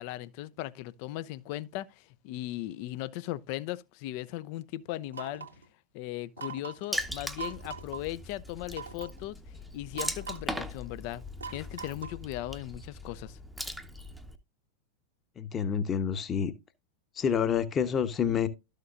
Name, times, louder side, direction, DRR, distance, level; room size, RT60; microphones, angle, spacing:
voice 1, 0.0-5.5 5.9-9.4 9.7-11.2 11.5-13.4, left 15 dB, 45° left, 0.5 m, -38 dB
sound 1, 5.1-5.6 6.4-6.9 7.4-8.0 8.7-9.2 9.9-10.6 11.4-12.2, right 6 dB, 75° right, 1.4 m, -41 dB
Water / Splash splatter, 6.9-14.4, equal, ahead, 0.8 m, -40 dB
voice 2, 15.4-16.5 17.2-18.5, left 7 dB, 25° left, 1.0 m, -28 dB
12.5 x 6.5 x 2.5 m
figure-of-eight pair, 90°, 0 cm